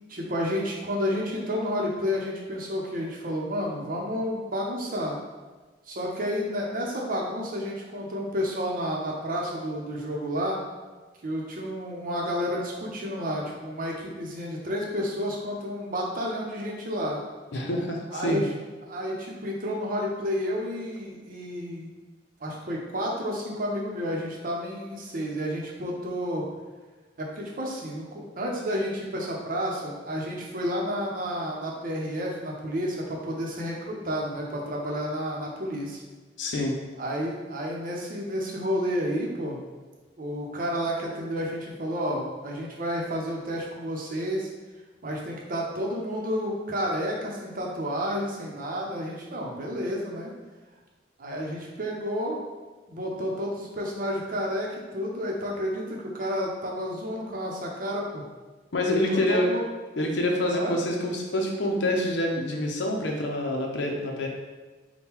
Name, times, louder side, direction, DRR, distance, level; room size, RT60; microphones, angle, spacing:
voice 1, 0.1-5.2 5.9-10.6 11.2-17.2 18.1-18.5 18.8-21.9 22.4-26.5 27.2-36.0 37.0-39.6 40.2-44.5 45.0-50.3 51.2-52.4 52.9-58.2 59.1-59.6 60.5-60.7, equal, 50° right, -1 dB, 0.7 m, -30 dB
voice 2, 17.5-18.4 36.4-36.7 58.7-59.5 60.0-64.3, left 1 dB, 70° left, 1 dB, 0.7 m, -26 dB
3.6 x 2.2 x 4.4 m, 1.3 s
head